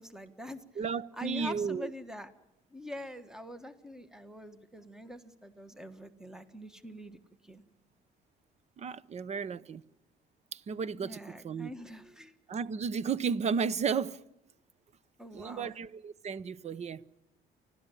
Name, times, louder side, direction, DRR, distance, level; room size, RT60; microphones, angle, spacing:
voice 1, 0.0-0.6 1.1-2.3 2.7-7.2 7.4-7.6 11.0-12.4 15.2-15.8, left 1 dB, 5° right, 1.6 m, -44 dB
voice 2, 0.8-1.9 8.8-9.8 10.5-11.7 12.5-14.2 15.3-17.0, right 6 dB, 40° right, 0.9 m, -33 dB
29.5 x 12.5 x 9.9 m
cardioid pair, 110°, 17 cm